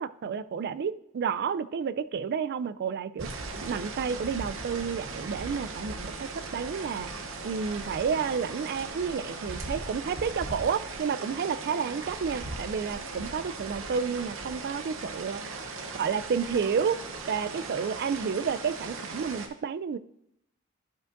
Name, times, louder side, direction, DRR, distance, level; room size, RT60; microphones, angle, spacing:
voice 1, 0.0-3.3 3.6-7.1 7.4-15.4 16.0-17.0 17.3-20.0, right 6 dB, 50° right, 15 dB, 0.3 m, -30 dB
sound 1, 3.2-19.5, right 3 dB, 70° right, 0.8 m, -38 dB
11.5 x 5.2 x 2.5 m, 0.77 s
head